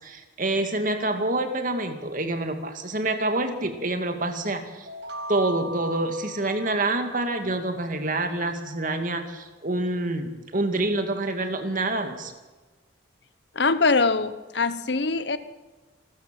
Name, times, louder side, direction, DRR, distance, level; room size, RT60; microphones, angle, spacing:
voice 1, 0.0-4.9 5.3-12.3, right 2 dB, 45° right, 6 dB, 2.2 m, -27 dB
sound 1, 4.8-7.6, equal, 65° right, 1.7 m, -38 dB
voice 2, 13.5-15.4, left 4 dB, 65° left, 13 dB, 1.0 m, -23 dB
27.5 x 13.5 x 7.6 m, 1.2 s
head